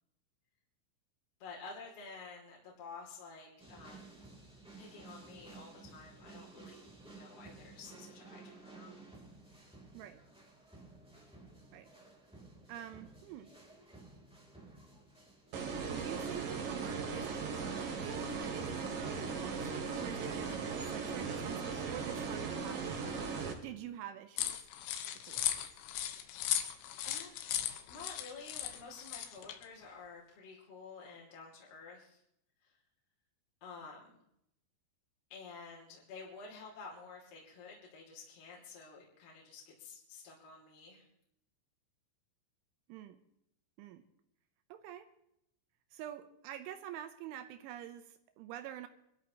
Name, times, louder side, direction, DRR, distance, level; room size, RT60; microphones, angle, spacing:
voice 1, 1.4-4.2 4.8-9.0 27.0-27.6 27.9-32.2 32.6-32.7 33.6-34.2 35.3-41.1, left 4 dB, 55° left, -4 dB, 4.2 m, -51 dB
sound 1, 3.6-20.7, right 3 dB, ahead, 1.6 m, -55 dB
voice 2, 12.7-13.5 15.9-23.1 23.6-24.7 25.1-25.5 42.9-43.2 43.8-44.0 44.7-45.1 45.9-48.9, right 11 dB, 80° right, 8 dB, 3.1 m, -47 dB
sound 2, 15.5-23.5, right 5 dB, 50° right, 3.2 m, -38 dB
sound 3, 24.4-29.6, left 11 dB, 80° left, 3.3 m, -37 dB
25.5 x 13.0 x 2.9 m, 0.78 s
omnidirectional pair, 5.8 m